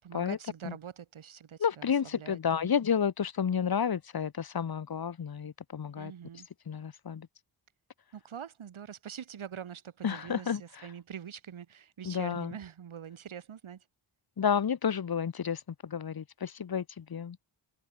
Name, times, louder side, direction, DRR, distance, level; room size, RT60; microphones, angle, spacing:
voice 1, 0.0-2.7 6.0-6.5 8.1-13.9, right 8 dB, 90° right, 4.1 m, -44 dB
voice 2, 1.6-6.1 6.7-7.3 10.0-10.9 12.0-12.5 14.4-17.4, left 7 dB, 50° left, 1.4 m, -31 dB
wide cardioid pair, 95°, 47 cm